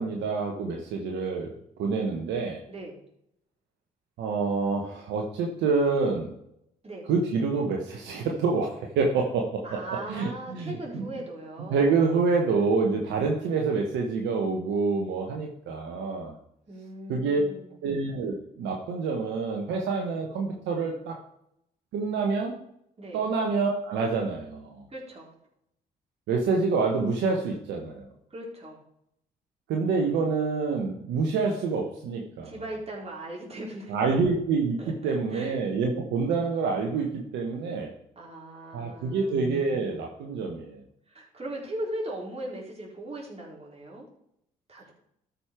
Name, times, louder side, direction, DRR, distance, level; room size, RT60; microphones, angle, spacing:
voice 1, 0.0-1.5 1.8-2.6 4.2-6.3 7.1-9.8 10.1-11.1 11.7-16.4 17.1-17.4 17.8-21.2 21.9-22.6 23.1-24.8 26.3-28.1 29.7-32.5 33.9-37.9 38.7-40.8, right 4 dB, 75° right, 1 dB, 1.3 m, -27 dB
voice 2, 2.7-3.0 6.8-7.1 9.6-12.1 16.7-17.7 23.0-23.2 24.9-25.3 28.3-28.8 32.4-34.0 34.8-35.6 38.2-39.5 41.1-44.1 44.7-44.9, right 1 dB, 35° right, -2 dB, 4.2 m, -39 dB
12.5 x 5.3 x 4.5 m, 0.75 s
hypercardioid pair, 45°, 19 cm